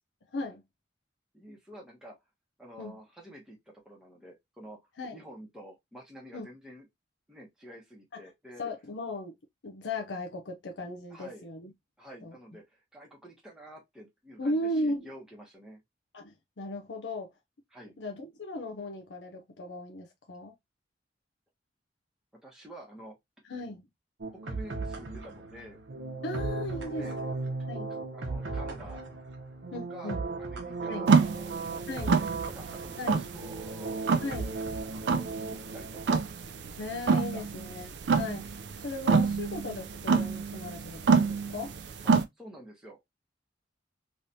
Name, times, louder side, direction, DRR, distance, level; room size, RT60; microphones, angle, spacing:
voice 1, 1.3-2.2 2.6-4.8 5.1-6.9 7.3-8.6 11.1-11.4 12.0-15.8 17.7-17.9 22.4-23.2 24.3-25.8 26.7-27.2 27.9-29.0 29.7-30.1 30.4-34.1 34.9-36.2 37.1-37.4 42.0-43.0, equal, 5° right, 1.1 m, -49 dB
voice 2, 8.6-9.3 9.6-11.7 12.2-12.3 14.4-15.0 16.1-17.3 18.0-20.5 23.5-23.8 26.2-27.1 27.7-27.9 29.7-30.2 30.9-31.1 31.9-32.2 33.0-33.2 34.2-34.5 36.8-41.7, left 1 dB, 75° left, 0.6 m, -36 dB
sound 1, 24.2-36.0, right 3 dB, 85° right, 1.0 m, -37 dB
sound 2, 31.1-42.2, right 5 dB, 65° right, 0.4 m, -27 dB
3.2 x 3.0 x 2.7 m
head